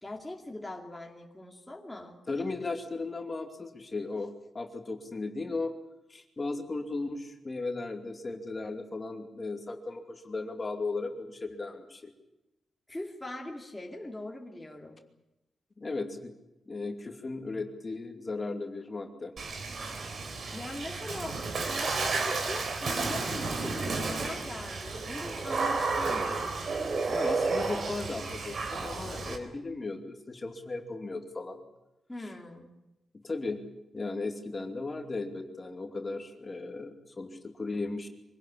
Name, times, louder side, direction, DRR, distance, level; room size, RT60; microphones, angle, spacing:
voice 1, 0.0-2.2 12.9-15.0 20.5-26.4 32.1-32.7, left 1 dB, 10° left, 0 dB, 2.5 m, -41 dB
voice 2, 2.3-5.7 6.1-12.1 15.8-16.3 16.7-19.3 27.1-31.6 32.2-32.3 33.1-33.6 33.9-38.1, left 3 dB, 25° left, 4 dB, 2.7 m, -36 dB
Water / Splash splatter, 19.4-29.4, right 4 dB, 50° right, 3.7 m, -32 dB
25.0 x 18.5 x 8.7 m, 0.96 s
wide cardioid pair, 145°, 0 cm